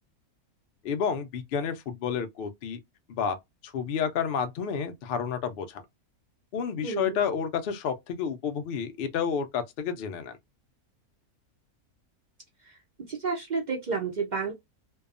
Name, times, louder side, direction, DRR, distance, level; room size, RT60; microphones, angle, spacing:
voice 1, 0.8-2.8 3.1-3.4 3.6-5.8 6.5-10.3, left 7 dB, 85° left, 0.5 m, -30 dB
voice 2, 6.8-7.2 12.6-12.8 13.1-14.5, right 5 dB, 90° right, 0.4 m, -31 dB
2.7 x 2.3 x 2.4 m
omnidirectional pair, 1.6 m